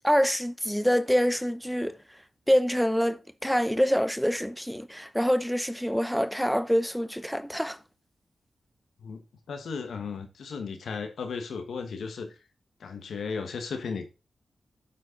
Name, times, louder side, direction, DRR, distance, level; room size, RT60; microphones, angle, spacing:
voice 1, 0.0-2.0 2.5-7.8, equal, ahead, 0.7 m, -25 dB
voice 2, 9.5-12.3 12.8-14.1, left 5 dB, 80° left, 1.3 m, -35 dB
12.0 x 4.2 x 3.8 m
cardioid pair, 45°, 0 cm